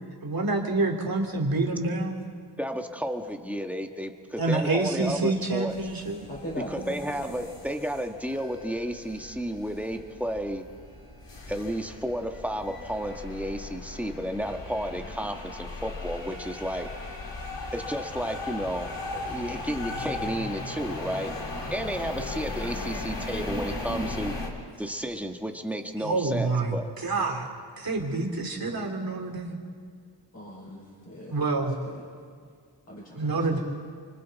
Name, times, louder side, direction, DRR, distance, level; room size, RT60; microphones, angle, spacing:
voice 1, 0.2-2.2 4.4-6.2 26.0-27.5 27.8-29.6 31.3-31.7 33.2-33.6, right 3 dB, 50° right, 1 dB, 3.0 m, -27 dB
voice 2, 2.6-5.8 6.6-10.7 11.5-16.9 17.7-21.3 21.7-24.4 24.8-26.9, equal, 5° right, 4 dB, 1.4 m, -32 dB
sound 1, 5.7-24.5, left 2 dB, 75° left, 3.2 m, -37 dB
voice 3, 6.3-7.2 30.3-31.3 31.9-32.0 32.9-33.6, equal, 35° left, -6 dB, 5.2 m, -39 dB
29.5 x 24.5 x 4.1 m, 2.1 s
wide cardioid pair, 120°, 43 cm